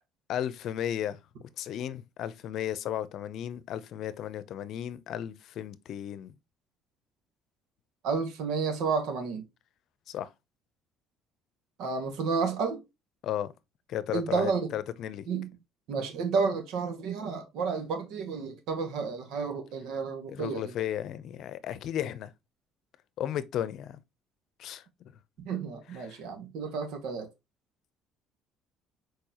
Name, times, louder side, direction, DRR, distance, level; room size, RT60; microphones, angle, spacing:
voice 1, 0.3-1.2 1.6-6.3 10.1-10.3 13.2-13.5 13.9-15.3 20.3-22.3 23.2-24.0 24.6-25.1 26.0-26.2, left 10 dB, 60° left, 0.7 m, -34 dB
voice 2, 8.0-9.5 11.8-12.8 14.1-14.7 15.3-15.5 15.9-20.7 25.4-27.3, right 5 dB, 70° right, 2.0 m, -31 dB
7.0 x 4.6 x 3.0 m
cardioid pair, 115°, 0 cm